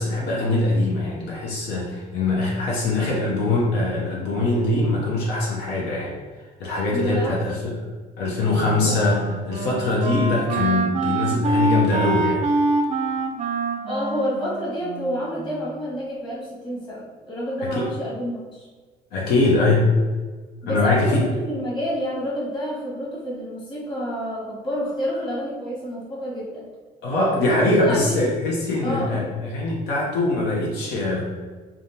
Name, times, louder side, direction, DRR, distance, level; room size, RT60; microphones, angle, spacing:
voice 1, 0.0-6.1 6.6-7.8 8.2-9.2 9.5-12.4 17.6-17.9 19.1-19.9 20.7-21.3 27.0-31.4, left 2 dB, 80° left, -3 dB, 0.7 m, -22 dB
voice 2, 6.9-7.6 8.8-9.0 13.9-18.7 20.6-26.7 27.4-28.3 28.8-29.3, equal, 25° left, -7 dB, 1.4 m, -29 dB
Wind instrument woodwind instrument, 8.5-15.7, right 2 dB, 40° right, 0.4 m, -25 dB
3.5 x 2.3 x 2.7 m, 1.4 s
cardioid pair, 110°, 17 cm